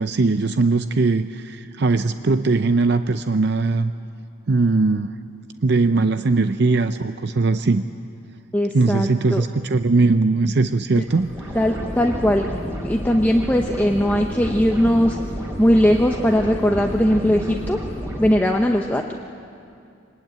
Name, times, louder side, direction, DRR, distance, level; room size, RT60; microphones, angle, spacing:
voice 1, 0.0-3.9 4.5-5.1 5.6-7.8 8.7-11.3, right 3 dB, 60° right, 10 dB, 0.6 m, -20 dB
voice 2, 8.5-9.4 11.5-12.5 12.8-15.2 15.6-17.8 18.2-19.1, equal, 10° left, 2 dB, 0.8 m, -19 dB
sound 1, 11.1-18.3, equal, 15° right, 4.2 m, -30 dB
24.5 x 19.5 x 9.1 m, 2.5 s
head